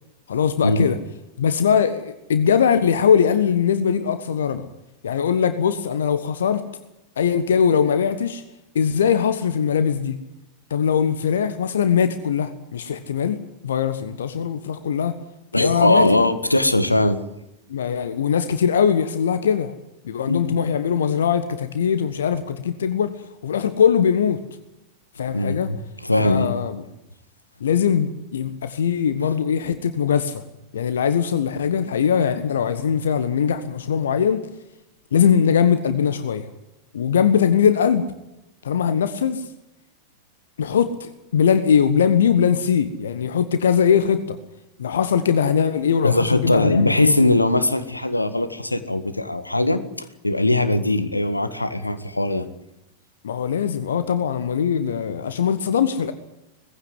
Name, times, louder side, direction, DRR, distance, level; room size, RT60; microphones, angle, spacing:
voice 1, 0.3-1.0 1.4-4.7 5.0-6.6 7.2-8.4 8.7-10.2 10.7-13.4 13.6-15.1 15.6-16.1 17.7-19.7 20.0-23.1 23.4-24.4 25.2-25.7 26.2-26.8 27.6-30.4 30.7-34.5 35.1-36.5 36.9-38.0 38.6-39.4 40.6-44.4 44.8-47.1 53.2-56.1, left 7 dB, 65° left, 11 dB, 1.3 m, -21 dB
voice 2, 15.5-17.2 20.2-20.5 25.3-26.5 46.0-52.4, left 2 dB, 85° left, 11 dB, 1.7 m, -20 dB
19.5 x 15.5 x 9.4 m, 0.92 s
figure-of-eight pair, 90°, 0 cm